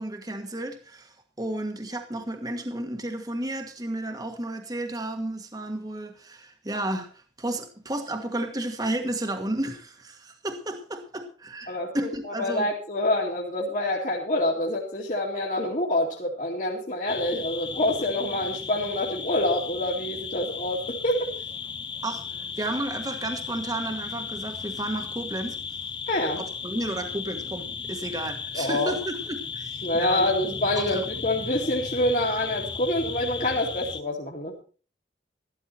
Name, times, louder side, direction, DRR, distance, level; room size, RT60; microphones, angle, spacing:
voice 1, 0.0-12.7 22.0-25.6 26.4-30.3 30.8-31.1, right 1 dB, 20° right, 1.5 m, -32 dB
voice 2, 11.7-21.3 26.1-26.4 28.5-28.9 29.8-34.6, left 1 dB, 45° left, 2.3 m, -26 dB
sound 1, 17.1-34.0, left 6 dB, 25° left, 0.7 m, -35 dB
13.5 x 12.5 x 4.2 m
head